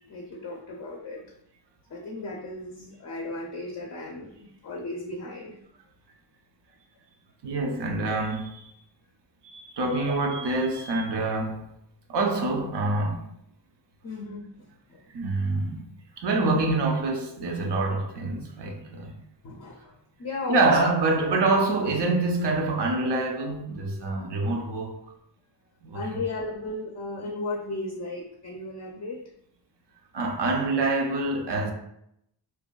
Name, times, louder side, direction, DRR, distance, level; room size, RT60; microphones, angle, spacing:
voice 1, 0.1-1.2 1.9-5.6 10.0-10.2 14.0-15.0 19.4-19.9 20.2-20.8 21.2-21.3 25.9-29.2, left 2 dB, 40° left, 0.4 m, -35 dB
voice 2, 7.4-8.7 9.4-11.6 12.1-13.2 15.1-15.8 16.2-19.1 20.5-25.0 25.8-26.0 30.1-31.7, right 2 dB, 65° right, 0.6 m, -26 dB
2.6 x 2.3 x 2.2 m
wide cardioid pair, 95°, 45 cm